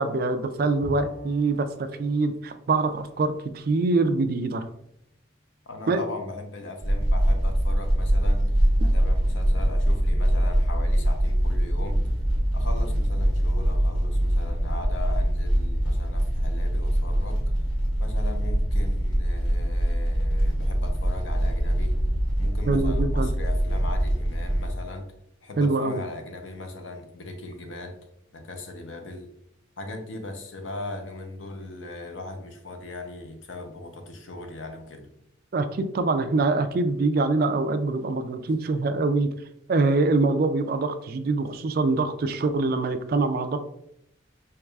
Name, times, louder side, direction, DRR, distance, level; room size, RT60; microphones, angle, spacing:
voice 1, 0.0-4.7 5.9-6.0 22.7-23.3 25.6-26.0 35.5-39.3 39.7-43.6, right 3 dB, 50° right, 0.3 m, -24 dB
Bowed string instrument, 0.8-4.5, right 1 dB, 20° right, 1.1 m, -40 dB
voice 2, 5.7-8.5 8.8-12.1 12.5-17.4 18.0-22.0 22.4-25.1 25.4-28.0 28.3-29.3 29.8-35.1, left 2 dB, 80° left, 0.7 m, -38 dB
sound 1, 6.8-24.7, equal, 5° right, 1.4 m, -23 dB
4.6 x 3.1 x 2.3 m
head